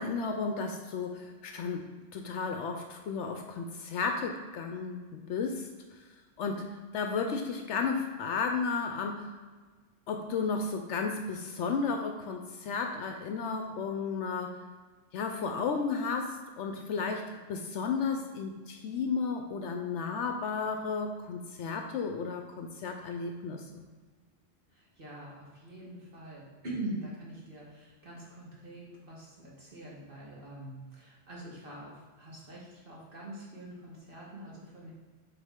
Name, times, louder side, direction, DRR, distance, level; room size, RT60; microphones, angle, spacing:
voice 1, 0.0-1.8 2.1-5.7 6.4-6.6 6.9-9.3 10.1-14.5 15.1-23.6, left 5 dB, 70° left, 4 dB, 0.8 m, -33 dB
voice 2, 24.7-34.9, right 1 dB, 45° right, -5 dB, 1.7 m, -44 dB
7.5 x 3.5 x 3.6 m, 1.4 s
omnidirectional pair, 1.3 m